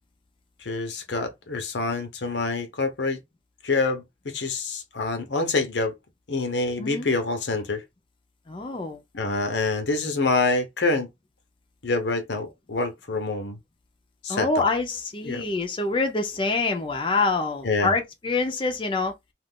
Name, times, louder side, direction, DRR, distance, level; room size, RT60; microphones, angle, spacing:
voice 1, 0.6-3.2 3.6-5.9 6.3-7.8 9.1-11.1 11.8-13.6 14.2-14.6 15.2-15.4 17.6-17.9, left 3 dB, 80° left, 0.8 m, -26 dB
voice 2, 8.5-9.0 14.3-19.1, left 3 dB, 30° left, 0.5 m, -26 dB
2.4 x 2.4 x 3.5 m
head